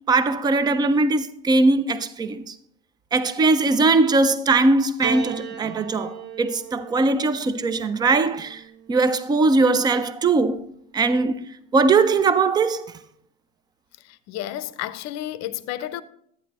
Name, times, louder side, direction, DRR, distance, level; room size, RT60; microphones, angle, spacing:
voice 1, 0.1-2.4 3.1-8.6 8.9-10.6 10.9-11.4 11.7-12.9, right 3 dB, 10° right, 0.3 m, -20 dB
Piano, 5.0-9.5 10.5-11.3, right 8 dB, 30° right, 0.8 m, -38 dB
voice 2, 14.0-16.0, left 13 dB, 45° left, 0.6 m, -31 dB
10.5 x 9.2 x 2.9 m
supercardioid pair, 110°, 38 cm